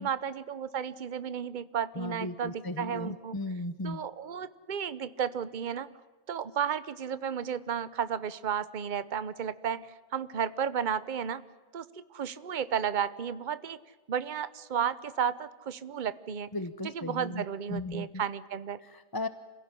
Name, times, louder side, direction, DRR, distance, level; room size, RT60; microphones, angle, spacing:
voice 1, 0.0-3.4 3.8-5.9 6.3-11.4 11.7-11.9 12.1-13.8 14.1-16.5 16.9-18.8, right 8 dB, 45° right, 15 dB, 1.0 m, -33 dB
voice 2, 2.0-4.0 16.5-18.2 18.8-19.3, left 2 dB, 20° left, 13 dB, 0.8 m, -36 dB
26.5 x 17.0 x 10.0 m, 1.2 s
omnidirectional pair, 1.1 m